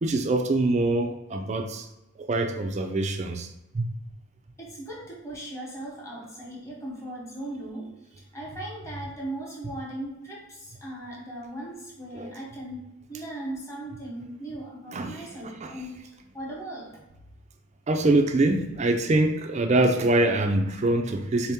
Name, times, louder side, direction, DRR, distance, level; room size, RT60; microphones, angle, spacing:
voice 1, 0.0-1.9 2.2-3.5 3.7-3.9 12.1-12.3 14.9-15.7 17.9-21.5, right 2 dB, 30° right, 5 dB, 0.4 m, -24 dB
voice 2, 4.6-7.9 8.2-16.9, right 1 dB, 15° left, -4 dB, 1.0 m, -38 dB
4.0 x 2.8 x 3.5 m, 0.95 s
head